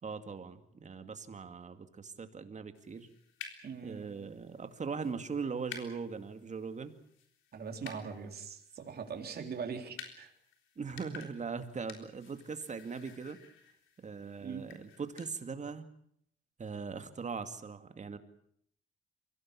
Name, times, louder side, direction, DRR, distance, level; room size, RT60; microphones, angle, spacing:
voice 1, 0.0-3.1 3.8-7.0 10.8-13.4 14.0-15.9 16.6-18.2, right 5 dB, 35° right, 9 dB, 2.3 m, -40 dB
sound 1, 2.7-15.3, left 7 dB, 85° left, 3.7 m, -53 dB
voice 2, 3.6-4.3 7.5-10.3 14.4-14.7, right 6 dB, 50° right, 4 dB, 3.8 m, -41 dB
24.0 x 17.5 x 8.6 m, 0.69 s
cardioid pair, 90°, 20 cm